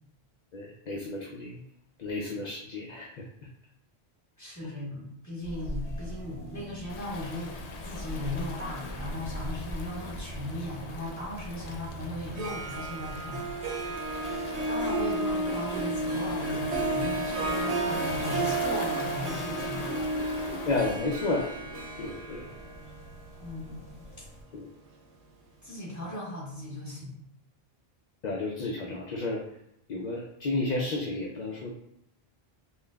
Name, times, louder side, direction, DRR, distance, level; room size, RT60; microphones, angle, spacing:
voice 1, 0.5-1.6 2.0-3.2 20.7-21.5 22.0-22.5 24.5-24.7 28.2-29.4 29.9-31.7, left 2 dB, 55° left, -2 dB, 0.5 m, -32 dB
voice 2, 4.4-7.5 7.8-14.3 14.7-20.3 23.4-24.3 25.6-27.3, left 1 dB, 15° left, -7 dB, 1.3 m, -38 dB
sound 1, 5.4-24.4, equal, 40° left, 1.4 m, -43 dB
Waves surf, 6.9-21.0, left 3 dB, 85° left, 0.9 m, -41 dB
Harp, 12.2-25.1, right 2 dB, 85° right, 0.9 m, -33 dB
5.4 x 2.3 x 2.2 m, 0.75 s
omnidirectional pair, 1.1 m